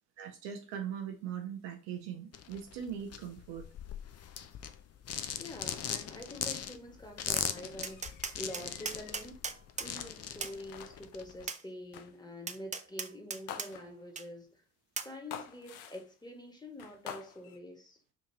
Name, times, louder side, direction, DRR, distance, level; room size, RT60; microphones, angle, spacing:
voice 1, 0.2-3.7, right 8 dB, 75° right, 0.7 m, -40 dB
sound 1, 2.3-11.5, left 8 dB, 35° left, 0.5 m, -40 dB
voice 2, 5.4-8.1 8.3-9.4 9.8-14.6 15.0-18.0, left 1 dB, 10° left, 1.5 m, -46 dB
Tap, 7.4-7.5 7.8-9.9 10.4-10.6 11.5-11.6 12.5-13.7 14.2-14.3 15.0-15.1, right 5 dB, 20° right, 0.4 m, -38 dB
sound 2, 7.8-9.3 10.0-10.4 10.7-11.2 11.9-12.3 13.5-14.2 15.3-16.2 16.8-17.6, left 9 dB, 80° left, 0.6 m, -48 dB
5.3 x 2.8 x 2.8 m
hypercardioid pair, 40°, 42 cm